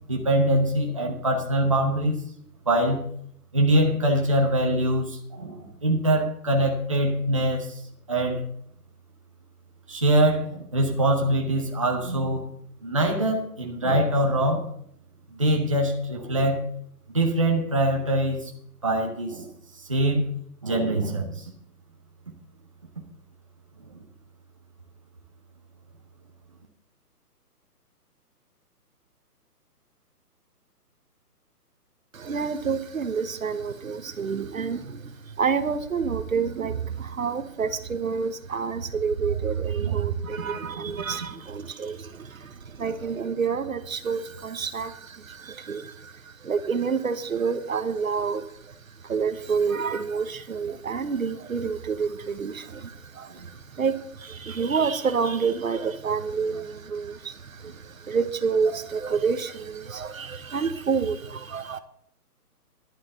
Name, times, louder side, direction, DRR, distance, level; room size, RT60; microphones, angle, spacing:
voice 1, 0.1-2.2 2.7-3.1 3.5-7.8 8.1-8.4 9.9-12.4 12.8-14.6 15.3-16.7 17.1-18.5 18.8-19.5 19.8-20.3 20.6-21.5 23.9-24.0 39.8-40.0 53.3-53.4, right 1 dB, 20° right, 0 dB, 0.9 m, -23 dB
voice 2, 32.1-48.7 49.0-61.8, right 5 dB, 60° right, 11 dB, 1.1 m, -28 dB
11.5 x 8.1 x 6.7 m, 0.66 s
hypercardioid pair, 180°, 47 cm